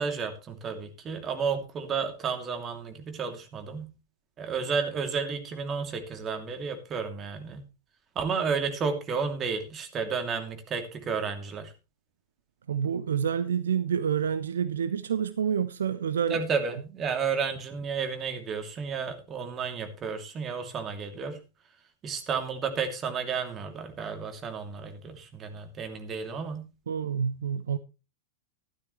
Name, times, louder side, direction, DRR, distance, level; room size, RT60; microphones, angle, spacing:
voice 1, 0.0-3.9 4.4-7.6 8.1-11.7 16.3-21.4 22.0-26.7, right 5 dB, 25° right, 2.7 m, -32 dB
voice 2, 12.7-16.4 16.7-16.8 26.9-27.8, right 8 dB, 65° right, 0.6 m, -28 dB
13.5 x 12.0 x 3.1 m
figure-of-eight pair, 90°, 0 cm